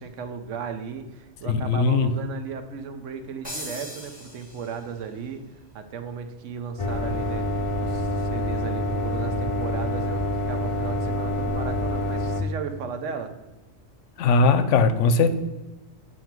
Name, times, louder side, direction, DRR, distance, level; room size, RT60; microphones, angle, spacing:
voice 1, 0.0-5.4 5.7-7.5 7.8-13.3, right 6 dB, 80° right, 8 dB, 1.0 m, -36 dB
voice 2, 1.5-2.1 14.2-15.4, left 4 dB, 75° left, 11 dB, 0.9 m, -19 dB
sound 1, 3.4-5.1, equal, 5° right, 1.4 m, -39 dB
sound 2, 6.8-12.4, left 1 dB, 40° left, 0.4 m, -26 dB
7.4 x 2.7 x 5.9 m, 1.1 s
omnidirectional pair, 1.3 m